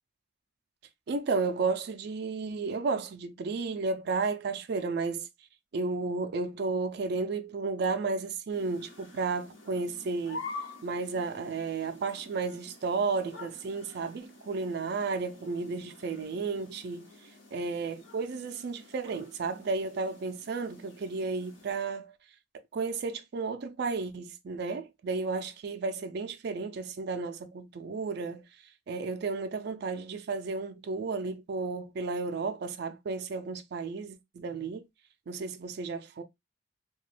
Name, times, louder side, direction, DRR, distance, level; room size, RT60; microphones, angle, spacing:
voice 1, 1.1-5.3 5.7-10.4 10.8-17.1 17.5-22.1 22.7-28.5 28.9-34.8 35.3-36.2, right 4 dB, 60° right, 0.4 m, -33 dB
sound 1, 8.5-21.7, left 3 dB, 75° left, 1.2 m, -48 dB
2.8 x 2.3 x 3.1 m
head